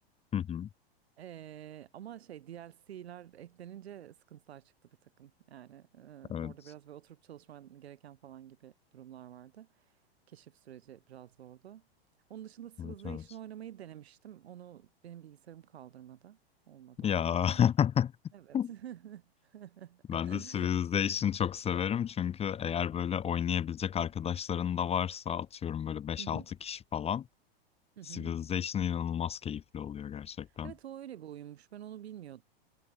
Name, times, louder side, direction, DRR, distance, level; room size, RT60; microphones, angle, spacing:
voice 1, 0.3-0.7 6.3-6.5 12.8-13.2 17.0-18.1 18.5-18.7 20.1-27.2 28.1-30.7, left 9 dB, 20° left, 0.9 m, -31 dB
voice 2, 1.2-4.7 5.0-9.7 10.3-11.8 12.3-16.4 16.7-17.6 18.3-20.7 21.0-21.1 26.2-26.5 28.0-28.4 30.6-32.4, right 11 dB, 80° right, 6.3 m, -48 dB
hypercardioid pair, 120°, 31 cm